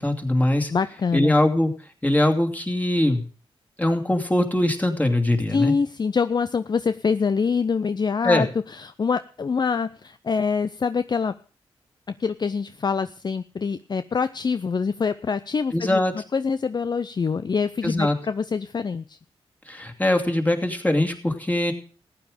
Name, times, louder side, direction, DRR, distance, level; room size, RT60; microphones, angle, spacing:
voice 1, 0.0-0.7 1.1-1.7 2.0-3.2 3.8-5.7 8.2-8.4 15.7-16.1 17.8-18.2 19.7-21.7, left 1 dB, 15° left, 3 dB, 2.6 m, -22 dB
voice 2, 0.7-1.3 5.5-11.3 12.2-19.2, left 5 dB, 40° left, 12 dB, 0.5 m, -25 dB
14.5 x 9.3 x 5.1 m, 0.40 s
cardioid pair, 55°, 11 cm